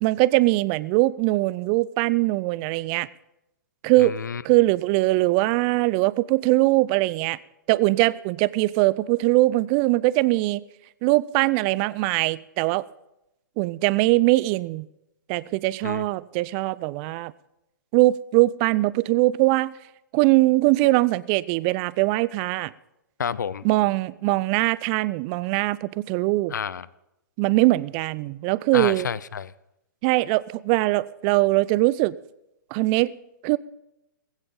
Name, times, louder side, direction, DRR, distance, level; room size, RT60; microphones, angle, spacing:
voice 1, 0.0-3.1 3.8-4.1 4.4-7.4 7.7-10.6 11.0-12.8 13.6-14.9 15.3-17.3 17.9-19.7 20.1-22.7 23.6-26.5 27.4-29.1 30.0-32.1 32.7-33.1 33.4-33.6, right 20 dB, 30° right, 0.4 m, -21 dB
voice 2, 4.0-4.4 15.8-16.1 23.2-23.7 26.5-26.9 28.7-29.5, left 7 dB, 65° left, 0.6 m, -29 dB
19.0 x 16.0 x 3.8 m
figure-of-eight pair, 115°, 11 cm